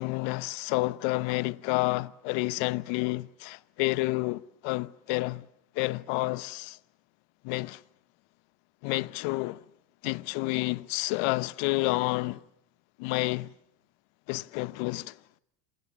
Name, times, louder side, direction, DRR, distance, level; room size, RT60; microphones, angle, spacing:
voice 1, 0.0-5.5 5.7-6.8 7.4-7.8 8.8-9.6 10.0-12.4 13.0-13.5 14.3-15.2, left 23 dB, 65° left, 1.1 m, -29 dB
28.0 x 27.5 x 7.3 m
hypercardioid pair, 90°, 49 cm